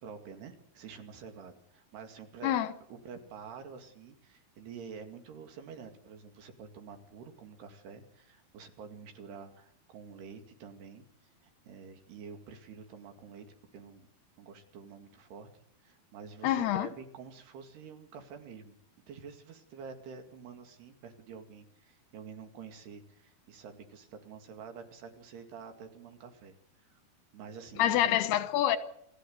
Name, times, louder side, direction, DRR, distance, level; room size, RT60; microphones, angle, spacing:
voice 1, 0.0-2.5 2.9-11.1 11.4-13.5 13.7-14.1 14.4-18.8 19.1-26.6 26.8-27.0 27.3-28.2, right 6 dB, 85° right, 4.4 m, -48 dB
voice 2, 16.4-16.9 27.8-28.8, left 12 dB, 85° left, 3.3 m, -26 dB
28.0 x 16.0 x 8.0 m
omnidirectional pair, 4.6 m